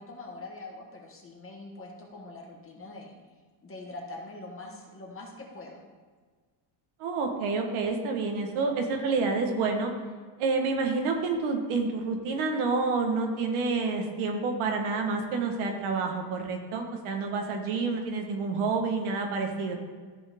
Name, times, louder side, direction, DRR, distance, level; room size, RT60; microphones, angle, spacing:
voice 1, 0.0-3.2 3.6-5.8, left 2 dB, 25° left, -1 dB, 1.6 m, -43 dB
voice 2, 7.0-9.9 10.4-19.7, right 4 dB, 90° right, 3 dB, 1.6 m, -28 dB
13.5 x 4.7 x 3.6 m, 1.5 s
cardioid pair, 145°, 48 cm